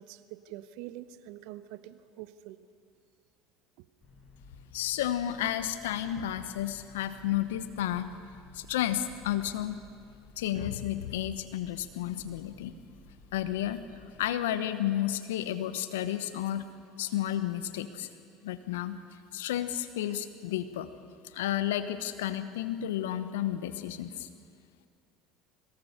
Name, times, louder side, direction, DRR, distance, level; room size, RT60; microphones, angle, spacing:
voice 1, 0.0-2.7 3.8-3.9, right 13 dB, 65° right, 14 dB, 0.9 m, -45 dB
sound 1, 4.0-14.3, left 4 dB, 40° left, 6.7 m, -55 dB
voice 2, 4.7-8.1 8.5-9.8 10.4-12.8 13.3-13.8 14.2-16.7 17.0-18.1 18.4-19.0 19.3-20.9 21.3-24.3, left 12 dB, 80° left, 12 dB, 1.1 m, -32 dB
22.5 x 18.0 x 6.7 m, 2.4 s
hypercardioid pair, 75°, 0 cm